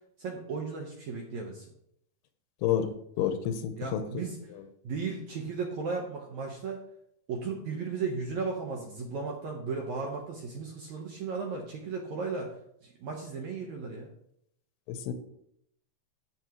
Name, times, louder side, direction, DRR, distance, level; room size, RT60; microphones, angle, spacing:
voice 1, 0.2-1.7 3.8-4.4 4.8-6.8 7.3-12.5 12.8-14.1, right 4 dB, 65° right, 0 dB, 1.8 m, -35 dB
voice 2, 2.6-2.9 3.2-4.0 15.1-15.2, left 10 dB, 90° left, 9 dB, 2.9 m, -28 dB
14.5 x 6.6 x 3.1 m, 0.72 s
omnidirectional pair, 4.7 m